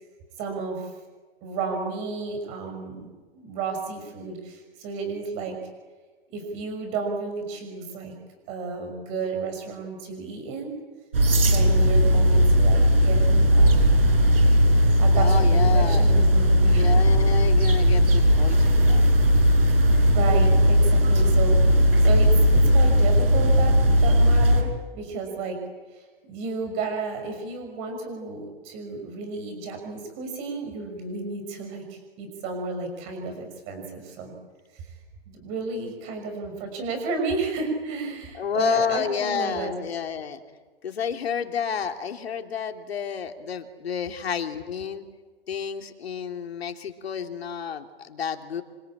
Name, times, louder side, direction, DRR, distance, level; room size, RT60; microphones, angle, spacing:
voice 1, 0.4-0.9 1.4-5.6 6.3-8.1 8.5-10.7 11.3-14.0 15.0-17.0 20.1-21.6 22.0-25.6 25.9-34.3 34.7-34.9 35.3-39.7, right 4 dB, 20° right, 5 dB, 5.9 m, -32 dB
sound 1, 11.1-24.6, equal, 65° right, 6.5 m, -18 dB
voice 2, 15.1-16.0 16.7-19.1 38.4-40.4 40.8-45.0 45.5-48.6, left 7 dB, 80° left, 5 dB, 3.1 m, -30 dB
26.0 x 26.0 x 8.8 m, 1.3 s
hypercardioid pair, 175°, 31 cm